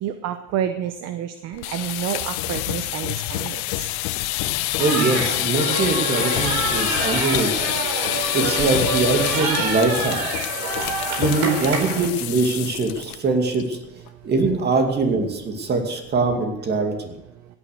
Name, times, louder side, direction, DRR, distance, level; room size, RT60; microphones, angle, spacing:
voice 1, 0.0-3.8, right 10 dB, 50° right, 10 dB, 0.9 m, -29 dB
sound 1, 1.5-13.2 13.5-13.8 14.1-14.2 14.5-14.9, left 16 dB, 80° left, 0.9 m, -26 dB
voice 2, 4.5-7.7 8.3-10.2 11.2-13.8 14.2-16.9, right 3 dB, 30° right, 5 dB, 2.5 m, -22 dB
sound 2, 4.8-12.1, right 4 dB, 80° right, 4.5 m, -27 dB
16.5 x 9.9 x 6.6 m, 0.89 s
cardioid pair, 140°, 33 cm